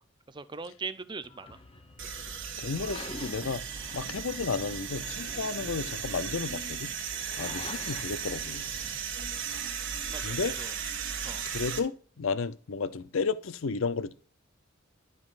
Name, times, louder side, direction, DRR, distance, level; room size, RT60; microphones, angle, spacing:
voice 1, 0.3-1.6 7.4-7.6 10.1-10.7 11.2-11.4, right 4 dB, 20° right, 0.5 m, -40 dB
sound 1, 1.2-9.0, left 2 dB, 25° left, 0.8 m, -47 dB
sound 2, 2.0-11.8, right 7 dB, 60° right, 1.5 m, -36 dB
voice 2, 2.6-3.6 3.9-6.9 7.4-8.7 10.2-10.5 11.4-14.1, left 4 dB, 65° left, 0.6 m, -32 dB
11.5 x 5.4 x 2.5 m
head